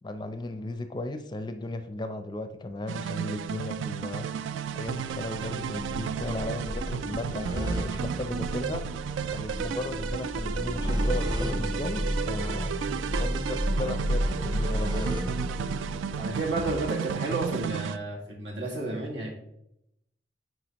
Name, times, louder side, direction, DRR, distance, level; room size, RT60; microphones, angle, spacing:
voice 1, 0.0-4.3 4.7-8.8 9.3-12.7 13.2-15.1, left 2 dB, 25° left, 8 dB, 0.5 m, -35 dB
sound 1, 2.9-18.0, right 8 dB, 90° right, 0.3 m, -34 dB
sound 2, 4.1-16.8, equal, 25° right, 0.7 m, -32 dB
voice 2, 16.2-19.4, right 2 dB, 70° right, -2 dB, 1.9 m, -31 dB
9.2 x 4.0 x 2.9 m, 0.79 s
head